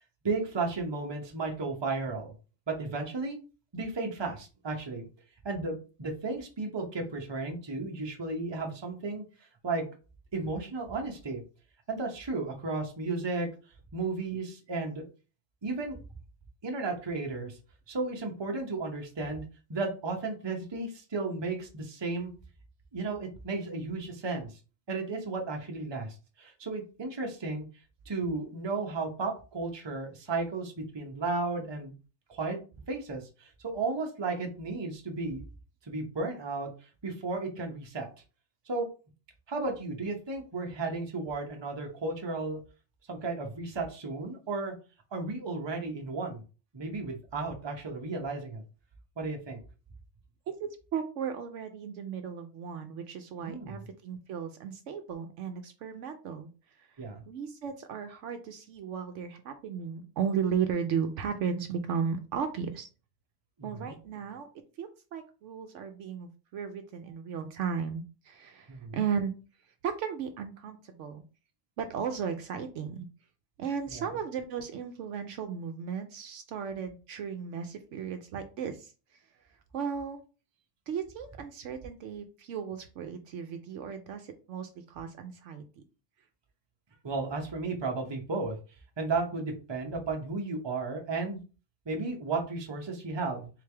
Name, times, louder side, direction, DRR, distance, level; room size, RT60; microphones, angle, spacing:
voice 1, 0.2-2.3 2.7-3.4 3.7-5.1 5.4-9.2 9.6-9.8 10.3-11.4 11.9-13.5 13.9-15.1 15.6-16.0 16.6-17.6 17.9-22.3 22.9-24.6 24.9-27.7 28.1-31.9 32.3-32.6 32.9-35.4 35.9-38.1 38.7-38.9 39.5-42.6 43.1-44.7 45.1-46.4 46.7-48.6 49.2-49.6 53.4-53.8 57.0-57.2 63.6-63.9 68.7-69.0 73.9-74.1 87.0-88.6 89.0-91.4 91.9-93.5, right 3 dB, 25° right, 2 dB, 0.7 m, -34 dB
voice 2, 50.5-62.9 63.6-64.5 64.8-69.3 69.8-71.2 71.8-73.1 73.6-79.2 79.7-80.2 80.9-85.8, right 7 dB, 70° right, 7 dB, 0.9 m, -35 dB
3.9 x 3.3 x 3.3 m, 0.34 s
omnidirectional pair, 1.4 m